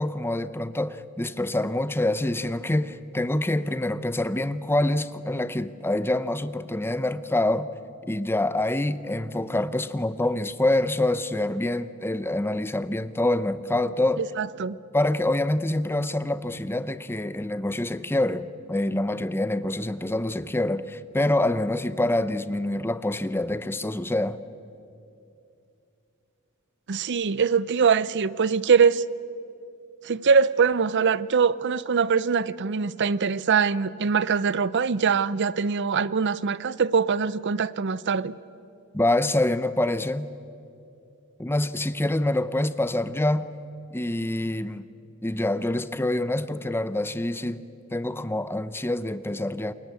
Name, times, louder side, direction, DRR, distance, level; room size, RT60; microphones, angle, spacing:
voice 1, 0.0-7.7 8.1-14.2 14.9-24.4 38.9-40.3 41.4-43.5 43.9-44.9 45.2-47.6 47.9-49.7, left 1 dB, 10° left, 0.6 m, -26 dB
voice 2, 14.2-14.8 26.9-29.0 30.0-38.3, right 6 dB, 50° right, 0.6 m, -23 dB
28.5 x 22.0 x 8.3 m
head